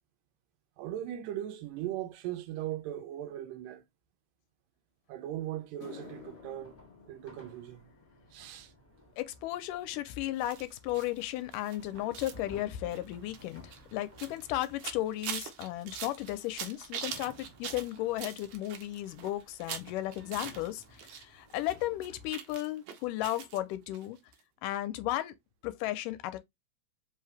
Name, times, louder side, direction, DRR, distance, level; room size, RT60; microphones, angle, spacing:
voice 1, 0.8-3.8 5.1-6.8 7.1-7.8 8.3-8.7, right 12 dB, 90° right, 2.4 m, -38 dB
sound 1, 5.1-5.2 5.6-14.1 14.4-14.8 15.6-15.7 18.4-18.5 20.2-20.3 20.5-20.7 21.0-21.5 21.9-22.0 22.5-22.6, left 8 dB, 65° left, 1.5 m, -57 dB
sound 2, 6.0-22.3, equal, 10° left, 0.8 m, -57 dB
voice 2, 9.2-24.2 24.6-25.3 25.6-26.4, left 15 dB, 85° left, 2.2 m, -35 dB
sound 3, 10.4-21.2 21.5-23.6 23.9-24.1 24.3-24.4, right 8 dB, 75° right, 2.2 m, -43 dB
5.2 x 2.8 x 3.2 m
omnidirectional pair, 3.8 m